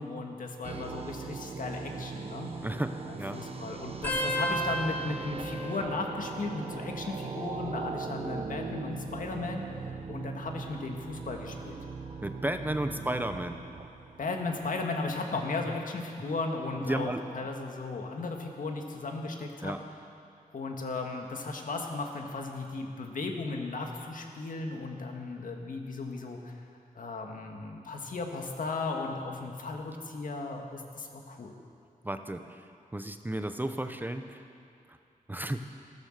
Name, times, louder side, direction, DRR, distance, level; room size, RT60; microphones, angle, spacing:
voice 1, 0.0-2.5 3.1-9.7 10.1-11.8 12.9-13.2 14.2-19.7 20.5-26.5 27.0-31.5, left 3 dB, 70° left, 2 dB, 1.7 m, -36 dB
sound 1, 0.6-14.7, right 4 dB, 45° right, 0.9 m, -40 dB
voice 2, 2.6-3.4 12.2-13.6 16.8-17.2 19.6-19.8 32.0-32.6 32.9-34.4 35.3-35.6, right 1 dB, 15° right, 8 dB, 0.6 m, -33 dB
sound 2, 4.0-7.2 7.5-8.1 9.1-10.6 11.2-11.5 12.7-13.1 14.6-14.7, equal, 15° left, 3.3 m, -37 dB
15.0 x 13.5 x 6.5 m, 2.6 s
wide cardioid pair, 115°, 14 cm